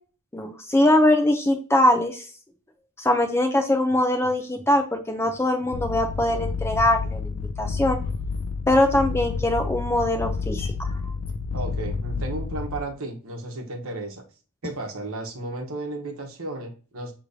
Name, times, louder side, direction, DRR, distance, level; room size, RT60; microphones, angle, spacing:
voice 1, 0.3-2.2 3.0-8.0 8.7-10.9, left 1 dB, 10° left, 6 dB, 0.5 m, -22 dB
sound 1, 5.7-12.8, left 4 dB, 70° left, 0.5 m, -30 dB
voice 2, 11.5-14.2 14.6-17.1, right 2 dB, 65° right, 3 dB, 1.1 m, -33 dB
6.4 x 3.0 x 2.7 m, 0.38 s
head